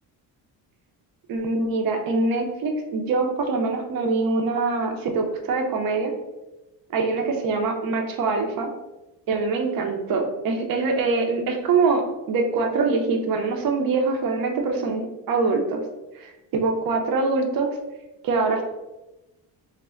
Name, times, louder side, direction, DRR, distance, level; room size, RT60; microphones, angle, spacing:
voice 1, 1.3-6.1 6.9-8.7 9.3-15.8 16.2-17.7 18.2-18.6, right 3 dB, 50° right, 3 dB, 0.5 m, -24 dB
2.2 x 2.1 x 3.5 m, 1.0 s
cardioid pair, 75°, 46 cm